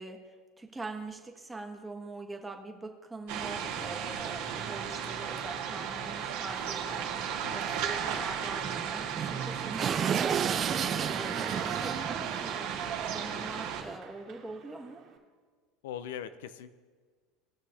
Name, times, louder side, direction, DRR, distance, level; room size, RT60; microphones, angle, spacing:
voice 1, 0.0-12.7 13.0-15.0, right 3 dB, 10° right, 3 dB, 1.3 m, -43 dB
sound 1, 3.3-13.8, right 8 dB, 70° right, 1.6 m, -35 dB
sound 2, 3.7-3.8 4.2-4.3 5.0-5.1 5.4-5.5 5.7-5.9 7.6-7.7 8.0-8.1 8.6-14.0, right 8 dB, 35° right, 0.4 m, -34 dB
voice 2, 7.3-7.8 15.8-16.7, left 9 dB, 80° left, 12 dB, 0.5 m, -41 dB
Human voice / Clapping / Cheering, 9.2-15.2, right 8 dB, 50° right, 2.0 m, -44 dB
18.5 x 6.3 x 2.8 m, 1.6 s
supercardioid pair, 100°, 0 cm